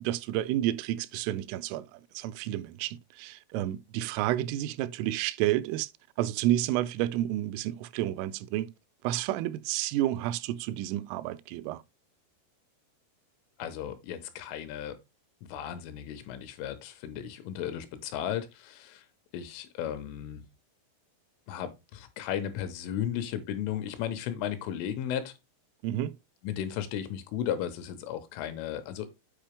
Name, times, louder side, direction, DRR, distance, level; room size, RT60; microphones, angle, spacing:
voice 1, 0.0-5.9 6.2-8.7 9.0-11.8 25.8-26.1, right 14 dB, 90° right, 3.1 m, -30 dB
voice 2, 13.6-15.0 15.4-19.0 19.3-20.4 21.5-25.3 26.4-29.1, left 10 dB, 85° left, 3.5 m, -35 dB
8.8 x 5.0 x 3.4 m
omnidirectional pair, 5.7 m